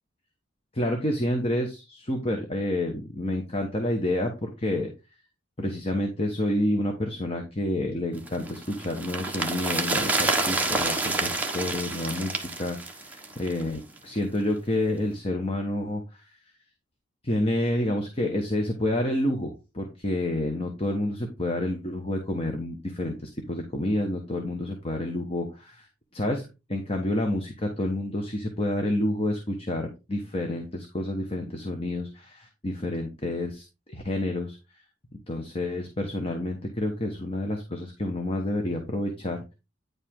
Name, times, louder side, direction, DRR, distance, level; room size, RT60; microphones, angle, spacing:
voice 1, 0.7-4.9 5.6-16.3 17.2-25.9 26.1-26.4 26.7-34.6 35.3-39.4, left 1 dB, 30° left, 3 dB, 1.3 m, -29 dB
sound 1, 8.3-13.7 14.0-14.1, right 2 dB, 10° right, 1.2 m, -28 dB
9.7 x 4.9 x 3.7 m, 0.27 s
head